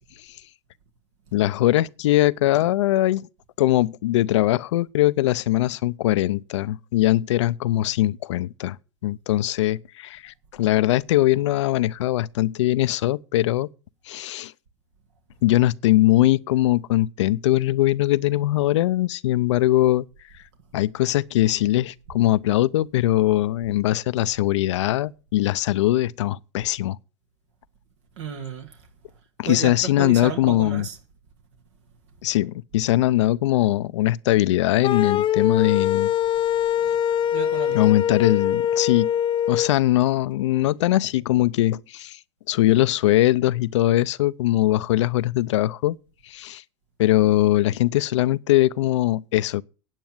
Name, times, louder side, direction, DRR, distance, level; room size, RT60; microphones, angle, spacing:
voice 1, 1.3-3.3 3.6-8.8 9.0-13.7 14.1-14.5 15.4-20.0 20.7-27.0 29.4-30.8 32.2-36.1 37.7-39.1 39.5-42.2 42.5-46.0 46.3-46.6 47.0-49.6, left 15 dB, 85° left, 0.5 m, -21 dB
voice 2, 28.2-28.8 29.4-31.0 37.3-37.9, right 6 dB, 80° right, 2.0 m, -32 dB
sound 1, 34.8-39.7, left 10 dB, 35° left, 0.8 m, -23 dB
9.2 x 8.9 x 7.6 m
hypercardioid pair, 105°, 15 cm